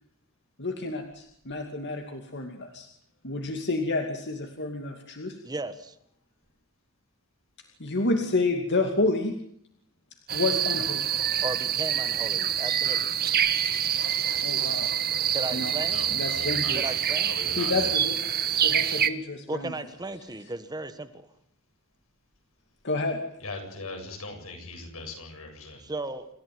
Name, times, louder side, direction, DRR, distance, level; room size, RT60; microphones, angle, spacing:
voice 1, 0.6-2.9 3.2-5.4 7.8-9.3 10.3-11.1 14.4-14.9 15.5-15.7 16.1-16.9 17.5-18.2 18.5-19.7 22.8-23.2, left 2 dB, 55° left, 3 dB, 2.6 m, -29 dB
voice 2, 5.4-5.9 11.4-13.1 15.3-16.0 16.7-17.3 19.5-21.3 25.8-26.3, right 2 dB, 20° right, 9 dB, 1.6 m, -35 dB
sound 1, 10.3-19.1, right 9 dB, 45° right, 1.3 m, -26 dB
voice 3, 15.9-16.9 17.2-18.0 23.4-25.8, left 3 dB, 85° left, 4 dB, 7.9 m, -40 dB
28.0 x 15.0 x 9.5 m, 0.70 s
head